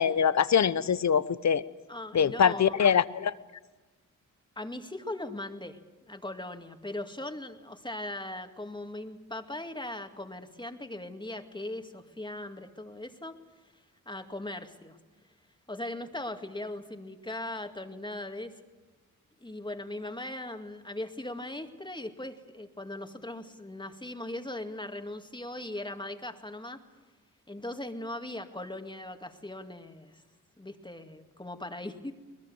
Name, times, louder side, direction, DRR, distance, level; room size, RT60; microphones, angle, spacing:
voice 1, 0.0-1.6 2.1-3.3, left 7 dB, 55° left, 16 dB, 1.0 m, -23 dB
voice 2, 1.9-2.8 4.6-13.3 13.7-15.0 15.7-18.5 19.4-26.8 27.5-30.2 30.6-32.1, left 1 dB, 15° left, 6 dB, 2.2 m, -39 dB
22.5 x 20.5 x 8.0 m, 1.3 s
cardioid pair, 70°, 34 cm